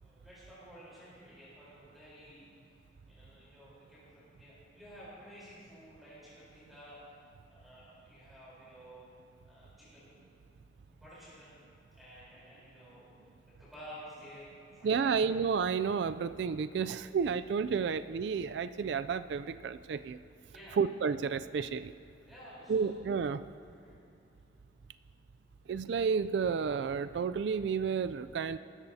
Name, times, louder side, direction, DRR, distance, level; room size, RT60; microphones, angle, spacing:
voice 1, 0.0-2.7 3.1-7.0 7.5-9.0 9.4-10.3 10.9-11.5 11.9-13.1 13.6-15.1 20.5-20.8 22.3-22.9 23.7-24.0, equal, ahead, -11 dB, 3.8 m, -52 dB
voice 2, 14.8-20.2 20.8-21.9 22.7-23.4 25.7-28.6, right 6 dB, 60° right, 12 dB, 0.3 m, -31 dB
23.5 x 13.5 x 2.8 m, 2.7 s
head